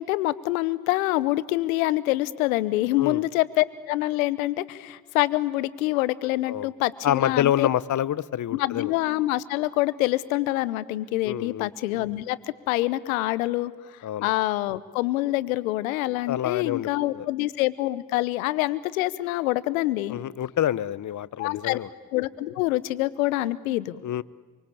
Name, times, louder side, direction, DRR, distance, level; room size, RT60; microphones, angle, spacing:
voice 1, 0.0-7.7 8.5-12.4 12.7-20.2 21.4-21.8 22.1-24.0, left 17 dB, 90° left, 18 dB, 0.9 m, -26 dB
voice 2, 7.0-8.9 11.2-11.7 14.0-14.3 16.3-17.3 20.1-21.9 24.0-24.2, left 11 dB, 45° left, 20 dB, 0.9 m, -27 dB
26.5 x 24.0 x 8.6 m, 1.4 s
hypercardioid pair, 55°, 40 cm